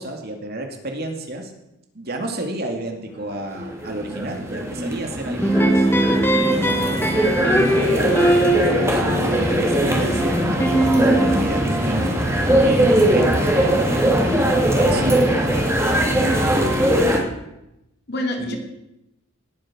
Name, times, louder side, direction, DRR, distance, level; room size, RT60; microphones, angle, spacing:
voice 1, 0.0-1.5 1.9-5.9 6.5-10.9 11.2-14.0 14.8-15.2 18.4-18.5, right 1 dB, 50° right, 4 dB, 2.3 m, -30 dB
sound 1, 3.3-17.2, right 1 dB, 15° right, 2.5 m, -20 dB
sound 2, 5.4-11.4, right 1 dB, 10° left, 1.3 m, -21 dB
voice 2, 7.1-7.7 18.1-18.6, equal, 50° left, 2 dB, 2.9 m, -28 dB
19.0 x 9.3 x 6.1 m, 0.87 s
head